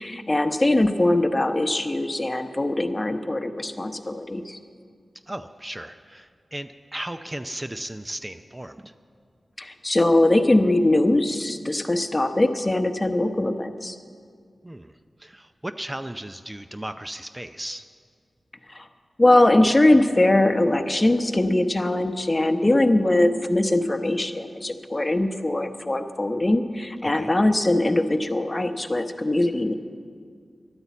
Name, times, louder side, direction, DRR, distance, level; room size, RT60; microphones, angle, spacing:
voice 1, 0.0-4.6 9.6-14.0 18.7-18.9 19.2-29.7, left 1 dB, 30° left, 8 dB, 0.9 m, -21 dB
voice 2, 5.3-8.9 14.6-14.9 15.2-17.9 27.0-27.3, right 1 dB, 20° right, 9 dB, 0.5 m, -36 dB
11.5 x 9.6 x 8.3 m, 2.1 s
cardioid pair, 45°, 0 cm